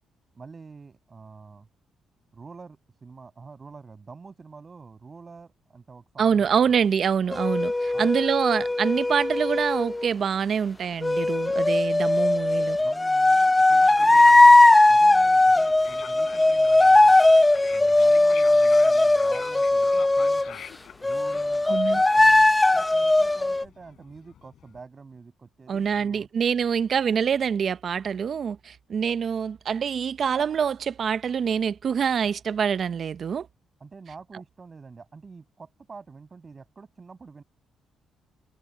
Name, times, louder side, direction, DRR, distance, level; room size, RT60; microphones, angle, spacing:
voice 1, 0.3-1.7 2.3-6.7 7.9-8.1 12.8-14.6 14.9-17.2 17.7-20.6 21.0-21.7 21.9-26.3 33.8-37.4, right 4 dB, 35° right, 5.9 m, -47 dB
voice 2, 6.2-12.8 21.7-22.0 25.7-33.5, right 7 dB, 55° right, 0.7 m, -25 dB
sound 1, 7.3-10.1 11.0-20.5 21.0-23.6, left 2 dB, 15° left, 0.7 m, -19 dB
sound 2, 13.7-24.8, left 10 dB, 70° left, 4.1 m, -47 dB
cardioid pair, 90°, 0 cm